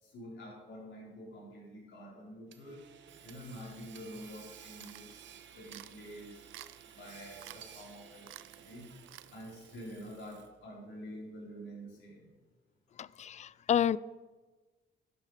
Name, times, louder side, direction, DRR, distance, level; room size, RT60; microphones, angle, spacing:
voice 1, 0.0-2.8 3.2-5.2 5.5-6.4 6.9-8.9 9.3-12.3, equal, 70° left, -3 dB, 4.4 m, -47 dB
Hammer / Sawing, 2.5-10.7, right 9 dB, 70° right, 1.0 m, -54 dB
sound 1, 4.8-5.2 5.7-6.0 6.5-6.9 7.4-7.6 7.9-8.0 8.2-8.6 9.1-9.3, right 16 dB, 85° right, 0.4 m, -50 dB
voice 2, 13.0-14.0, left 9 dB, 35° left, 21 dB, 0.3 m, -30 dB
12.0 x 8.7 x 5.0 m, 1.3 s
cardioid pair, 90°, 20 cm